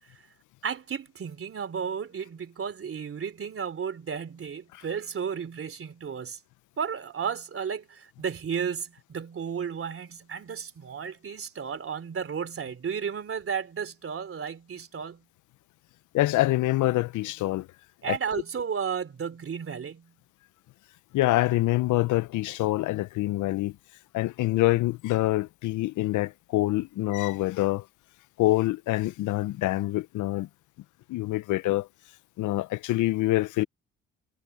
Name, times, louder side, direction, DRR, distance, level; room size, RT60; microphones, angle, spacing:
voice 1, 0.6-6.4 6.8-15.2 18.0-20.1, right 7 dB, 45° right, 3.3 m, -33 dB
voice 2, 16.1-17.7 18.1-18.2 21.1-23.7 24.1-27.8 28.4-30.5 31.1-31.9 32.4-33.6, left 17 dB, 80° left, 0.6 m, -25 dB
cardioid pair, 90°, 30 cm